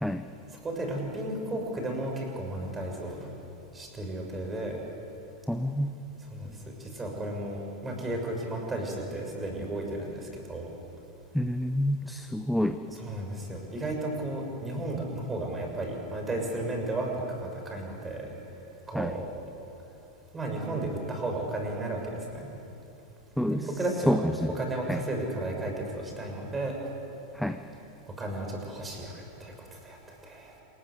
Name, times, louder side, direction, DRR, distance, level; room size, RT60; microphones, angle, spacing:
voice 1, 0.6-3.3 3.7-4.8 6.3-10.7 12.9-18.3 18.9-19.3 20.3-22.5 23.5-24.2 24.5-26.8 28.2-30.0 30.2-30.5, right 1 dB, 15° right, 2 dB, 6.3 m, -34 dB
voice 2, 5.5-5.9 11.3-12.8 18.9-19.1 23.4-23.7 24.1-24.5 24.9-25.0 27.3-27.6, equal, ahead, 8 dB, 0.9 m, -27 dB
27.5 x 21.5 x 8.4 m, 3.0 s
figure-of-eight pair, 90°, 0 cm